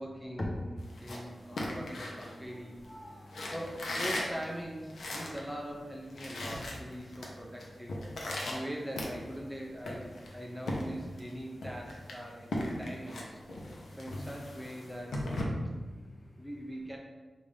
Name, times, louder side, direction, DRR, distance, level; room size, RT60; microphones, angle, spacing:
voice 1, 0.0-2.7 3.1-3.2 3.5-8.0 8.5-13.4 14.0-15.2 16.4-17.0, equal, 10° right, -1 dB, 0.4 m, -42 dB
sound 1, 0.8-2.9 3.3-5.5 5.8-5.9 6.1-7.3 7.6-9.5 9.9-11.3 11.6-15.4, left 1 dB, 85° left, 0.7 m, -38 dB
voice 2, 0.9-1.7 2.3-3.5 8.4-8.5 13.6-13.9 15.7-16.4, left 1 dB, 35° left, -2 dB, 0.8 m, -52 dB
5.1 x 2.6 x 3.3 m, 1.4 s
wide cardioid pair, 145°, 0 cm